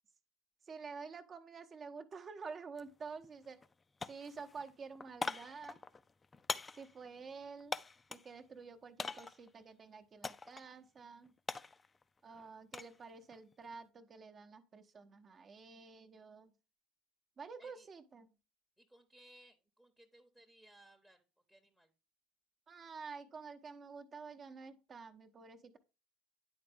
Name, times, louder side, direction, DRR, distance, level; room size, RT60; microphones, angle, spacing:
voice 1, 0.7-3.6 4.0-5.8 6.7-7.8 8.1-11.3 12.2-16.5 17.4-18.3 22.7-25.8, right 5 dB, 30° right, 8 dB, 0.9 m, -49 dB
sound 1, 2.7-2.9 3.2-3.7 4.0-8.3 9.0-9.5 10.2-10.7 11.0-13.0 13.3-13.7, left 4 dB, 20° left, 0.4 m, -43 dB
voice 2, 18.8-21.9, right 1 dB, 5° right, 6 dB, 0.9 m, -63 dB
9.7 x 4.2 x 3.4 m, 0.30 s
figure-of-eight pair, 65°, 0 cm